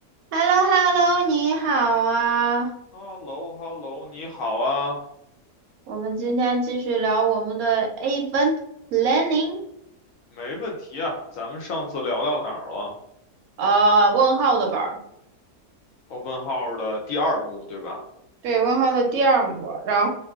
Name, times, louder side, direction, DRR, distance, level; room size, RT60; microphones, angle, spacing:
voice 1, 0.3-2.7 5.9-8.5 8.9-9.6 13.6-15.0 18.4-20.1, right 4 dB, 70° right, 2 dB, 0.9 m, -21 dB
voice 2, 2.9-5.1 10.3-13.0 16.1-18.0, left 1 dB, 70° left, 0 dB, 0.9 m, -29 dB
2.6 x 2.5 x 2.3 m, 0.79 s
omnidirectional pair, 1.7 m